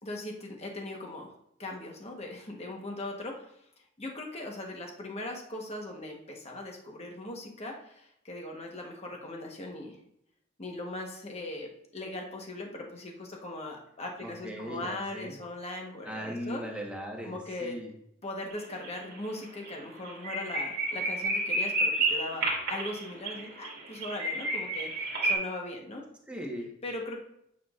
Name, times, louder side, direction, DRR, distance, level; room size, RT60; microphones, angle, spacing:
voice 1, 0.0-1.3 1.6-3.5 4.0-10.0 10.6-16.6 17.2-17.8 18.2-26.1 26.8-27.2, left 2 dB, 30° left, 1 dB, 1.2 m, -39 dB
voice 2, 14.2-15.4 16.0-17.9 26.3-26.7, equal, 5° right, -1 dB, 1.2 m, -38 dB
sound 1, 18.5-18.9 19.1-19.3 19.7-19.8 20.0-25.3, right 2 dB, 50° right, 2.2 m, -30 dB
9.1 x 6.0 x 2.5 m, 0.76 s
head